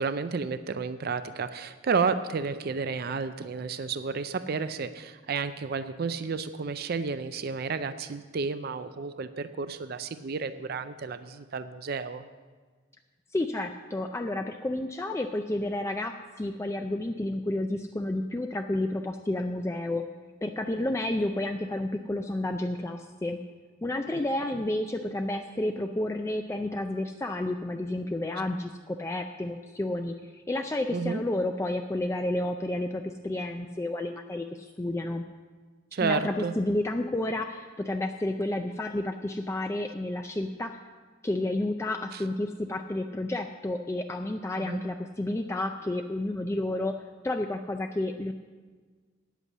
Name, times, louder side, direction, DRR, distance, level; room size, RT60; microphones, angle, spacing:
voice 1, 0.0-12.3 24.5-24.6 30.9-31.2 35.9-36.5 42.1-42.2 44.6-44.8, right 5 dB, 50° right, 11 dB, 0.4 m, -31 dB
voice 2, 13.3-20.0 20.4-23.4 23.8-35.2 36.0-40.8 41.2-46.9 47.2-48.3, left 1 dB, 15° left, 4 dB, 0.4 m, -31 dB
9.5 x 8.2 x 7.2 m, 1.5 s
head